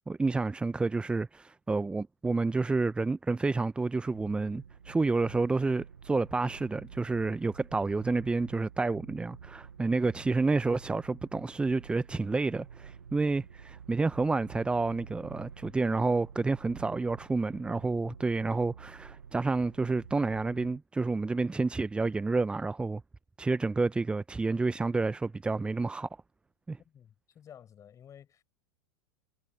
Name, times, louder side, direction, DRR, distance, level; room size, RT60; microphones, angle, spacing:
voice 1, 0.1-23.0 23.4-26.1 26.7-26.8, right 3 dB, 10° right, 0.6 m, -29 dB
sound 1, 4.1-20.8, right 7 dB, 80° right, 7.3 m, -50 dB
voice 2, 26.8-28.4, left 9 dB, 30° left, 5.6 m, -53 dB
figure-of-eight pair, 90°, 11 cm